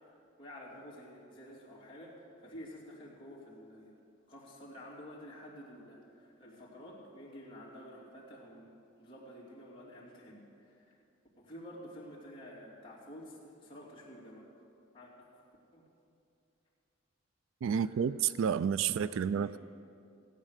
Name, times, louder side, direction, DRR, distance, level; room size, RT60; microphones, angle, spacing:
voice 1, 0.4-3.9 4.3-11.0 11.4-14.5 14.9-15.4 15.7-15.8 17.7-18.1 18.9-19.5, equal, 25° left, 3.1 m, -50 dB
voice 2, 17.6-19.6, right 7 dB, 70° right, 0.3 m, -30 dB
16.5 x 8.9 x 6.6 m
head